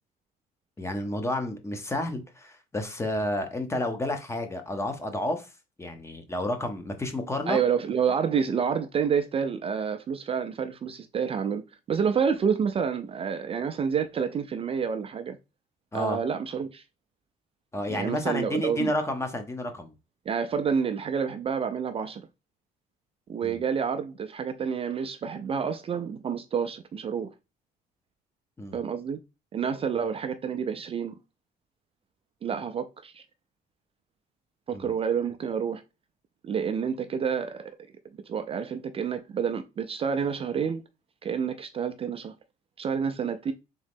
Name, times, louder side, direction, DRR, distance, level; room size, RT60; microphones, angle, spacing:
voice 1, 0.8-5.5 5.8-7.6 15.9-16.2 17.7-19.9 23.4-23.6 28.6-28.8 34.7-34.9, left 1 dB, 15° left, 0.8 m, -30 dB
voice 2, 7.5-11.6 11.9-15.4 15.9-16.8 17.9-18.9 20.3-22.2 23.3-27.3 28.7-29.2 29.5-31.1 32.4-33.2 34.7-35.8 36.4-37.7 38.3-40.8 41.2-42.3 42.8-43.5, right 6 dB, 35° right, 0.4 m, -28 dB
3.7 x 3.1 x 3.5 m
cardioid pair, 110°, 17 cm